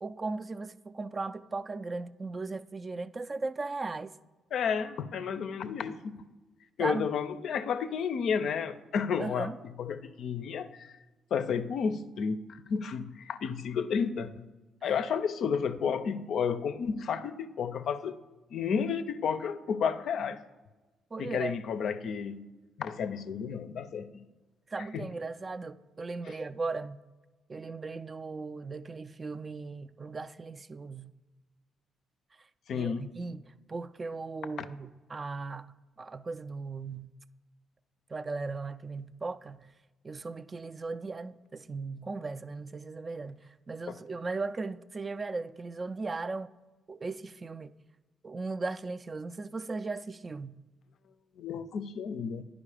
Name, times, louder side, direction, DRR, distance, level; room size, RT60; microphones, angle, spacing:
voice 1, 0.0-4.1 6.8-7.1 9.2-9.6 14.8-14.9 21.1-21.6 24.7-27.0 27.5-31.1 32.7-35.7 36.0-37.1 38.1-39.7 40.0-46.5 46.9-47.7 48.2-50.6, right 3 dB, 30° right, 0.3 m, -37 dB
voice 2, 4.5-6.3 6.8-9.5 9.8-11.0 11.3-14.4 14.8-18.2 18.5-20.4 21.2-22.5 22.8-24.3 24.9-25.0 26.3-26.4 32.7-33.1 43.9-44.0 51.4-52.4, left 6 dB, 65° left, 0.4 m, -32 dB
10.0 x 5.0 x 4.9 m
cardioid pair, 90°, 0 cm